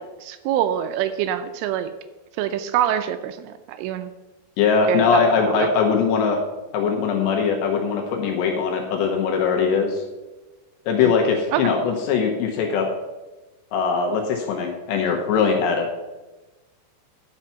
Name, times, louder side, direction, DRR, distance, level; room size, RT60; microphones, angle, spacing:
voice 1, 0.0-1.9 2.4-4.1 4.9-5.7 11.0-11.1 11.5-11.7, right 11 dB, 85° right, 10 dB, 3.0 m, -25 dB
voice 2, 4.6-6.4 6.7-10.0 10.9-12.9 13.7-15.9, left 5 dB, 75° left, 2 dB, 2.8 m, -21 dB
10.5 x 5.8 x 5.7 m, 1.1 s
omnidirectional pair, 5.8 m